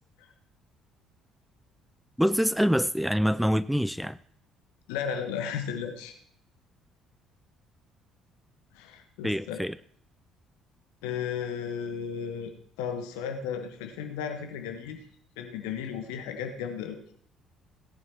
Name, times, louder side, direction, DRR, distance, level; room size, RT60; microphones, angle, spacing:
voice 1, 2.2-4.2 9.2-9.8, equal, ahead, 17 dB, 0.4 m, -25 dB
voice 2, 4.9-6.1 8.7-9.6 11.0-12.5 12.8-15.0 15.4-17.0, left 7 dB, 65° left, 6 dB, 1.5 m, -34 dB
17.0 x 8.8 x 4.5 m, 0.66 s
figure-of-eight pair, 50°, 0 cm